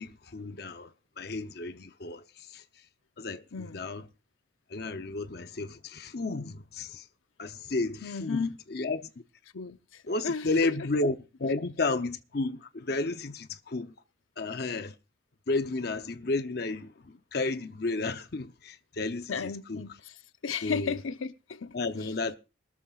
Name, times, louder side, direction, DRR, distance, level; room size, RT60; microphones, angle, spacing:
voice 1, 0.0-2.6 3.2-4.0 4.7-7.1 7.4-9.1 10.1-13.9 14.4-14.9 15.5-19.8 20.6-21.0 21.7-22.4, left 3 dB, 50° left, 0.7 m, -32 dB
voice 2, 3.5-3.8 8.0-8.5 9.5-10.7 19.3-20.1 20.4-21.8, left 5 dB, 85° left, 0.8 m, -34 dB
22.0 x 13.5 x 2.4 m
head